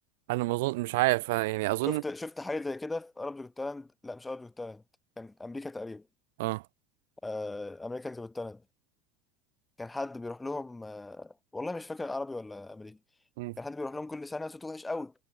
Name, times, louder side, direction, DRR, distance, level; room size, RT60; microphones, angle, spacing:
voice 1, 0.3-2.0 6.4-6.6 13.4-13.5, right 21 dB, 85° right, 0.3 m, -28 dB
voice 2, 1.9-4.8 5.2-6.1 7.2-8.6 9.8-13.0 13.6-15.1, left 2 dB, 10° left, 0.5 m, -37 dB
supercardioid pair, 140°, 0 cm